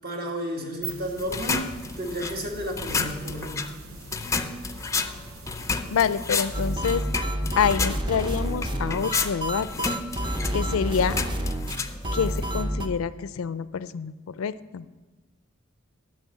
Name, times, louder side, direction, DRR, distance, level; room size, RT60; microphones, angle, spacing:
voice 1, 0.0-1.7 2.0-3.6, right 1 dB, 50° right, 1 dB, 1.8 m, -32 dB
sound 1, 0.6-6.8, right 6 dB, 80° right, 0.7 m, -44 dB
sound 2, 1.2-12.6, left 4 dB, 15° left, 0.5 m, -32 dB
voice 2, 5.9-7.0 7.6-9.7 10.5-11.2 12.1-14.8, left 7 dB, 70° left, 15 dB, 0.4 m, -27 dB
sound 3, 6.5-12.9, equal, 25° right, 0.7 m, -29 dB
10.0 x 6.3 x 7.4 m, 1.2 s
head